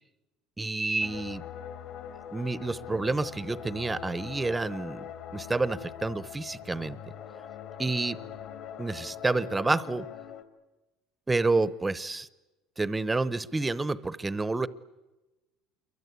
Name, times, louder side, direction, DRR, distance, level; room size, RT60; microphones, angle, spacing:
voice 1, 0.6-1.4 2.3-5.0 5.3-7.0 7.8-8.2 8.8-10.1 11.3-12.3 12.8-14.7, right 3 dB, 10° right, 17 dB, 0.9 m, -29 dB
sound 1, 1.0-10.4, left 9 dB, 55° left, 2.8 m, -42 dB
28.5 x 23.5 x 8.3 m, 1.1 s
cardioid pair, 140°, 0 cm